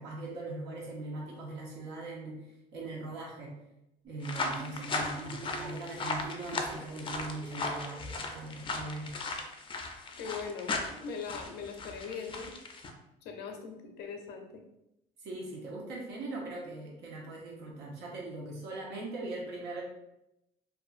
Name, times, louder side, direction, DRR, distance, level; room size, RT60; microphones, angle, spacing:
voice 1, 0.0-3.5 4.1-9.1 15.2-19.8, right 2 dB, 85° right, -2 dB, 0.9 m, -40 dB
sound 1, 4.0-9.4, right 2 dB, 30° right, 0.7 m, -49 dB
sound 2, 4.2-12.9, left 3 dB, 30° left, 0.4 m, -37 dB
voice 2, 10.1-12.5 13.2-14.6, left 5 dB, 80° left, 3 dB, 0.5 m, -41 dB
2.5 x 2.4 x 2.4 m, 0.88 s
cardioid pair, 110°, 17 cm